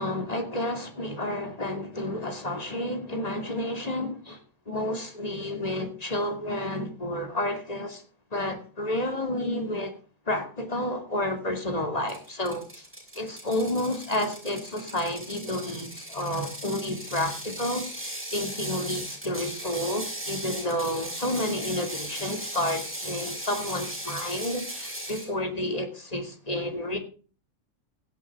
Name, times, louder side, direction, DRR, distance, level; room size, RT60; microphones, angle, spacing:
voice 1, 0.0-4.4 4.7-8.0 8.3-9.9 10.3-12.9 13.2-27.0, left 1 dB, 30° left, 2.4 m, -30 dB
Ratchet pawl, 12.1-25.3, right 1 dB, 10° right, 4.8 m, -37 dB
16.0 x 10.0 x 3.5 m
omnidirectional pair, 1.4 m